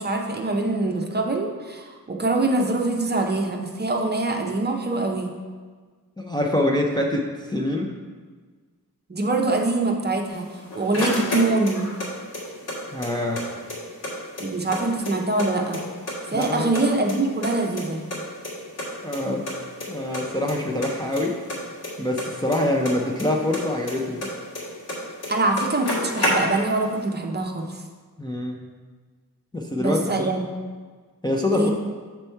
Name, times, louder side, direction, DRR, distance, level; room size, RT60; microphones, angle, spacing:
voice 1, 0.0-5.3 9.1-10.5 10.7-11.9 14.4-15.8 16.3-18.0 25.3-27.8 29.8-30.4 31.5-31.7, right 2 dB, 30° right, 1 dB, 0.6 m, -24 dB
voice 2, 6.2-7.9 12.9-13.4 16.3-16.7 19.0-19.5 19.9-21.4 22.0-24.3 28.2-28.6 29.5-30.3 31.2-31.7, left 1 dB, 10° left, -1 dB, 0.5 m, -25 dB
sound 1, 10.3-12.1 12.3-13.4 13.7-13.8 14.0-15.5 15.7-16.5 16.7-18.2 18.4-18.5 18.8-18.9 19.1-19.2 19.5-19.9 20.1-20.5 20.8-23.3 23.5-25.0 25.2-25.3 25.5-26.8, left 1 dB, 85° left, 2.0 m, -29 dB
6.8 x 4.5 x 4.5 m, 1.5 s
wide cardioid pair, 165°, 36 cm